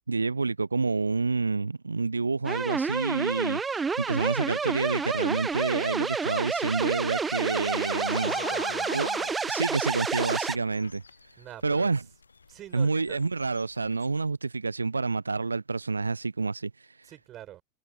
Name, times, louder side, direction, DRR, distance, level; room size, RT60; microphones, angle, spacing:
voice 1, 0.1-8.3 8.9-9.1 9.4-11.0 11.3-12.0 12.7-17.1, right 4 dB, 80° right, 0.6 m, -28 dB
sound 1, 2.4-10.6, right 5 dB, 15° right, 0.5 m, -29 dB
sound 2, 3.8-14.3, left 5 dB, 75° left, 0.5 m, -44 dB
voice 2, 8.2-8.9 11.4-11.9 12.5-13.2 17.0-17.6, right 13 dB, 30° right, 7.1 m, -44 dB
figure-of-eight pair, 90°, 0 cm